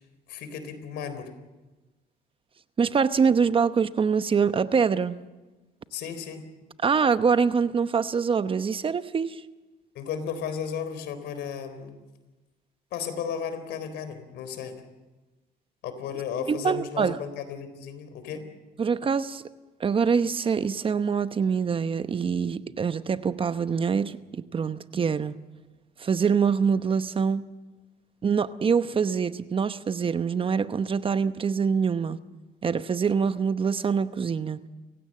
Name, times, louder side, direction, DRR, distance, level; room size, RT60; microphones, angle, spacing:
voice 1, 0.3-1.3 5.9-6.4 9.9-12.0 12.9-14.9 15.8-18.4, left 7 dB, 80° left, 3.9 m, -34 dB
voice 2, 2.8-5.2 6.8-9.4 16.5-17.2 18.8-19.4 19.8-25.4 26.0-27.4 28.2-32.2 32.6-34.6, right 6 dB, 30° right, 0.9 m, -24 dB
29.5 x 16.5 x 7.6 m
cardioid pair, 110°, 17 cm